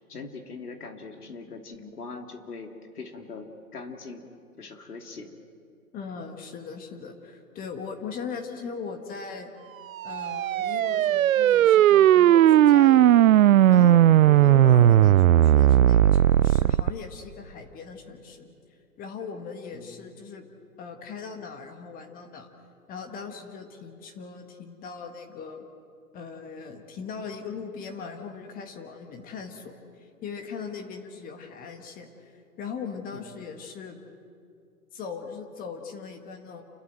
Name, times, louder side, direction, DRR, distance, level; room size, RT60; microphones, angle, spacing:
voice 1, 0.1-4.2 4.6-5.3 19.7-20.0 33.1-33.3, left 4 dB, 75° left, 4 dB, 2.9 m, -41 dB
voice 2, 5.9-9.5 10.0-13.2 13.7-14.0 14.3-18.5 19.0-20.5 20.8-22.5 22.9-25.6 26.1-32.3 32.6-34.0 34.9-36.6, left 5 dB, 20° left, 5 dB, 1.7 m, -39 dB
sound 1, 10.0-16.9, right 12 dB, 60° right, 0.5 m, -17 dB
30.0 x 12.5 x 7.8 m, 2.3 s
hypercardioid pair, 130°, 45 cm